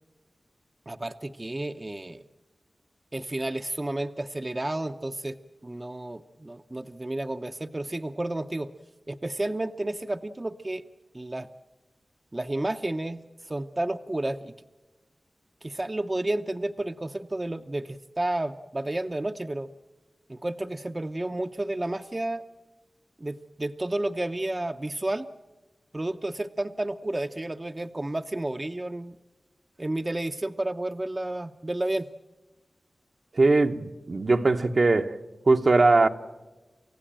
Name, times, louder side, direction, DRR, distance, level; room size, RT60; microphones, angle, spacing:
voice 1, 0.9-2.2 3.1-5.4 5.6-8.7 9.1-10.8 11.1-11.5 12.3-14.5 15.6-19.7 20.3-22.4 23.2-25.3 25.9-29.2 29.8-32.1, right 1 dB, 30° right, 0.7 m, -31 dB
voice 2, 33.3-35.2 35.5-36.1, right 3 dB, 60° right, 1.1 m, -20 dB
29.0 x 15.5 x 8.8 m
cardioid pair, 50°, 0 cm